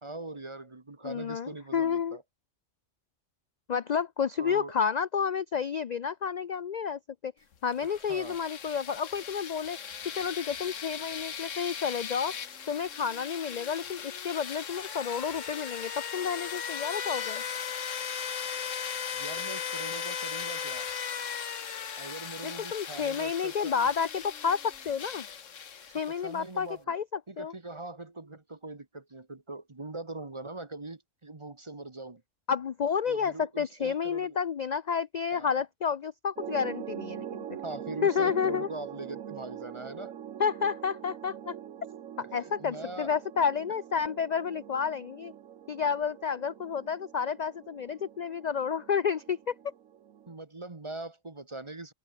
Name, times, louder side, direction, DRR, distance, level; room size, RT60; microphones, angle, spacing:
voice 1, 0.0-2.2 4.4-4.7 7.8-8.4 19.1-20.9 22.0-23.7 26.1-27.0 27.3-32.2 33.1-34.4 35.3-35.7 37.6-40.1 42.4-43.1 50.3-51.9, right 2 dB, 25° right, 1.2 m, -41 dB
voice 2, 1.0-2.2 3.7-7.3 7.6-9.8 10.1-12.3 12.7-17.4 22.4-25.3 25.9-27.5 32.5-37.6 38.0-38.7 40.4-41.6 42.3-45.3 45.7-49.5, left 6 dB, 50° left, 0.5 m, -30 dB
sound 1, 7.7-26.4, left 7 dB, 75° left, 1.6 m, -38 dB
sound 2, 36.4-50.3, right 10 dB, 90° right, 1.3 m, -44 dB
open air
omnidirectional pair, 1.3 m